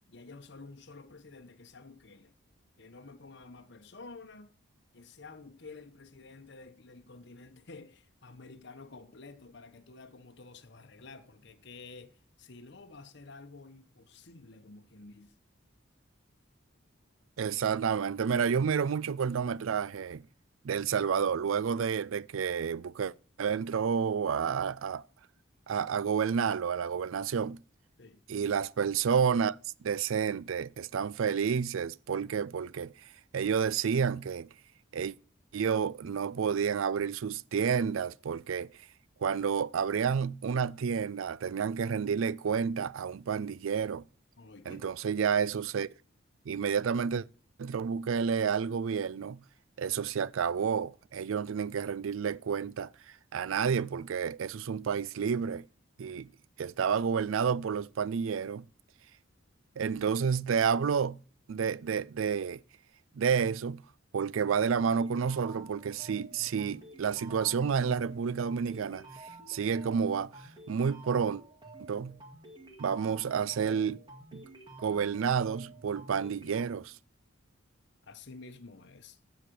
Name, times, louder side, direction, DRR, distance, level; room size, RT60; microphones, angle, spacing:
voice 1, 0.1-2.3 2.8-4.6 4.9-15.4 28.0-28.2 44.4-44.9 78.0-79.2, left 3 dB, 55° left, 1.0 m, -50 dB
voice 2, 17.4-20.2 20.6-25.0 25.7-27.6 28.3-29.6 29.8-32.9 33.3-34.5 34.9-35.1 35.5-38.7 39.2-44.0 44.7-45.9 46.5-47.3 47.6-49.4 49.8-52.9 53.3-55.6 56.0-56.3 56.6-58.7 59.8-61.2 61.5-62.6 63.2-63.8 64.1-69.0 69.5-70.3 70.7-71.4 71.9-72.2 72.8-74.0 74.3-74.4 74.8-76.9, right 6 dB, 80° right, 0.4 m, -30 dB
sound 1, 64.8-76.6, right 2 dB, 25° right, 2.1 m, -50 dB
15.0 x 5.0 x 6.8 m
head